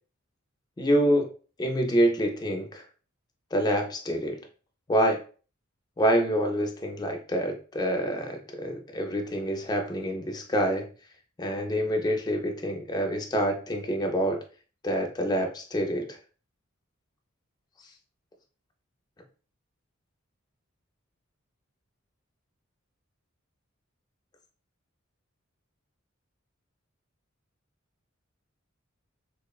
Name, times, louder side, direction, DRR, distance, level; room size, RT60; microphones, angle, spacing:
voice 1, 0.8-1.3 1.6-2.8 3.5-4.4 4.9-5.2 6.0-10.9 11.4-14.4 14.8-16.2, equal, 20° left, 4 dB, 0.3 m, -26 dB
2.9 x 2.0 x 2.3 m, 0.39 s
head